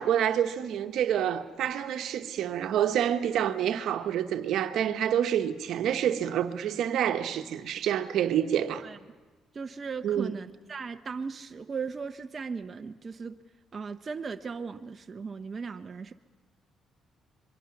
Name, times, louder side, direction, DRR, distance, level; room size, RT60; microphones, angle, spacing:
voice 1, 0.0-8.8 10.0-10.3, right 10 dB, 80° right, 1.0 m, -27 dB
voice 2, 9.5-13.4 13.7-16.1, right 5 dB, 40° right, 0.7 m, -37 dB
24.5 x 22.5 x 5.9 m
cardioid pair, 90°, 0 cm